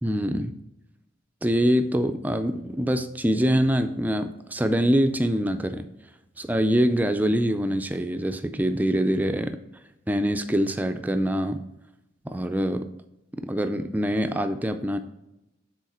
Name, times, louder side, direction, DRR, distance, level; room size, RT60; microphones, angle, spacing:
voice 1, 0.0-0.5 1.4-5.9 6.4-9.6 10.1-11.6 12.3-12.9 13.4-15.0, equal, 10° right, 8 dB, 0.3 m, -24 dB
7.1 x 3.8 x 4.2 m, 0.91 s
head